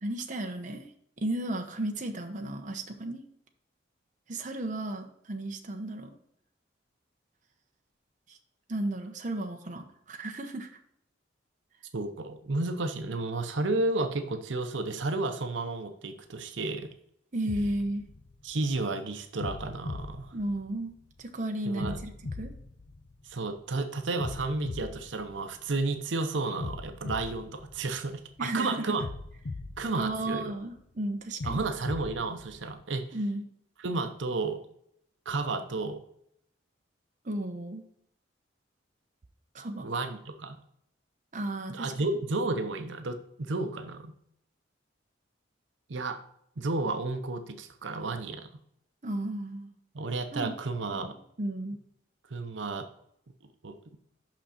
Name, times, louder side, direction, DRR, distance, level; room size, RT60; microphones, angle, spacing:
voice 1, 0.0-0.9 1.2-3.2 4.3-6.2 8.3-8.4 8.7-10.7 17.3-18.0 20.3-20.9 21.2-22.5 28.4-28.9 30.0-31.6 33.1-33.5 37.2-37.9 39.5-39.9 41.3-42.1 49.0-49.7 50.3-50.5 50.9-51.8, right 1 dB, 45° right, 4 dB, 0.9 m, -34 dB
voice 2, 11.9-16.9 18.4-20.3 21.6-22.0 23.2-29.0 29.8-30.5 31.4-33.2 33.8-34.6 35.3-36.0 39.8-40.6 41.7-44.1 45.9-46.2 46.6-48.5 49.9-51.2 52.3-52.9 53.6-53.7, right 3 dB, 85° right, 7 dB, 0.7 m, -32 dB
sound 1, 17.5-18.8 19.4-21.1 21.8-23.6 24.2-26.0 26.6-28.4 29.0-30.7 31.4-32.8, left 3 dB, 65° left, 0.6 m, -40 dB
6.1 x 5.9 x 4.2 m, 0.70 s
head